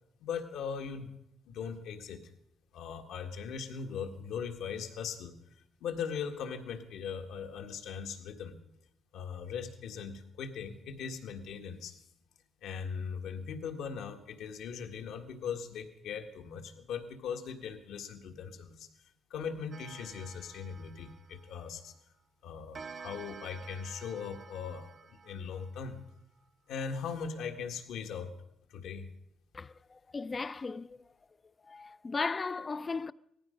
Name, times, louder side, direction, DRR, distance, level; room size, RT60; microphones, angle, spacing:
voice 1, 0.2-1.1 1.4-2.3 2.7-5.4 5.8-8.6 9.1-12.0 12.6-18.9 19.3-21.9 22.4-26.0 26.7-28.3 28.7-29.1, left 6 dB, 80° left, 1.7 m, -39 dB
Clock, 19.7-22.0 22.7-26.1, right 5 dB, 45° right, 0.7 m, -51 dB
voice 2, 29.5-31.0 31.7-33.1, left 4 dB, 30° left, 0.5 m, -36 dB
18.0 x 14.5 x 5.2 m
cardioid pair, 90°, 0 cm